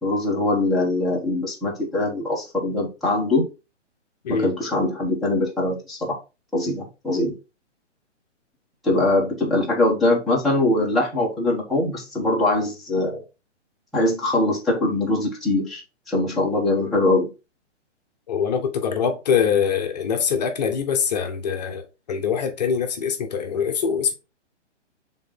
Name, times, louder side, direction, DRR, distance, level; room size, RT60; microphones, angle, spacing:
voice 1, 0.0-3.5 4.3-6.2 6.5-7.3 8.8-13.2 13.9-17.3, left 2 dB, ahead, 1.3 m, -22 dB
voice 2, 18.3-24.1, left 7 dB, 35° left, 1.1 m, -23 dB
6.7 x 4.0 x 3.9 m
hypercardioid pair, 165°, 36 cm